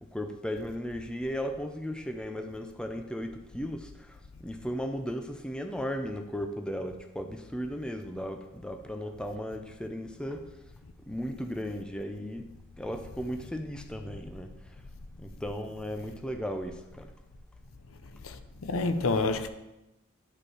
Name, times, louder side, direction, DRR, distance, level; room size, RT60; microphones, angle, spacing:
voice 1, 0.1-10.4 11.1-12.4 12.8-14.5 15.2-17.1, equal, 5° left, 0.5 m, -36 dB
voice 2, 18.2-19.5, left 3 dB, 70° left, 0.6 m, -28 dB
10.5 x 5.1 x 4.8 m
head